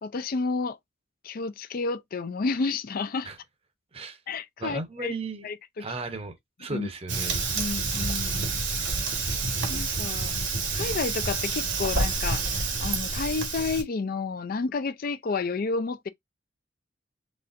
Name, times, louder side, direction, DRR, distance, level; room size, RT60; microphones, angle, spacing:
voice 1, 0.0-0.8 1.2-3.3 4.3-5.1 5.4-5.9 6.7-6.9 7.5-8.5 9.7-10.3 10.7-16.1, left 4 dB, 50° left, 0.4 m, -30 dB
voice 2, 4.6-5.5 5.8-7.4 9.0-9.1, right 3 dB, 30° right, 0.8 m, -35 dB
Fire, 7.1-13.8, right 3 dB, 70° right, 1.2 m, -28 dB
4.1 x 3.2 x 2.5 m
head